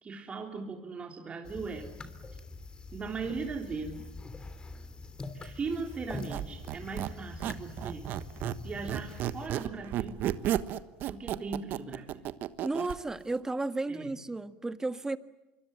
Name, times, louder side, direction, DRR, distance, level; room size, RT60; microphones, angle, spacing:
voice 1, 0.0-1.9 2.9-4.1 5.3-8.1 8.6-10.2 11.1-12.2 13.9-14.1, right 4 dB, 30° right, 2 dB, 3.4 m, -38 dB
sound 1, 1.4-9.5, left 3 dB, 20° left, 3.2 m, -44 dB
Squeak, 6.1-8.6 8.9-13.0, right 12 dB, 55° right, 1.3 m, -33 dB
voice 2, 12.6-15.2, right 2 dB, 15° right, 11 dB, 1.6 m, -33 dB
26.0 x 24.5 x 8.9 m, 0.95 s
hypercardioid pair, 85°, 4 cm